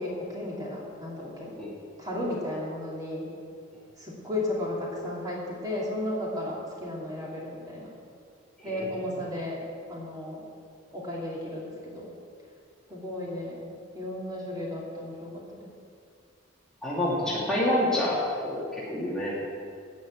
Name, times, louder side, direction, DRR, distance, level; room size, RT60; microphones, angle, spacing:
voice 1, 0.0-1.6 2.0-3.3 4.0-7.9 8.6-10.5 10.9-12.1 12.9-13.7 13.9-15.7, left 1 dB, 20° right, -4 dB, 2.8 m, -34 dB
voice 2, 16.8-19.3, left 1 dB, 5° left, -8 dB, 2.4 m, -27 dB
15.5 x 6.1 x 8.8 m, 2.3 s
head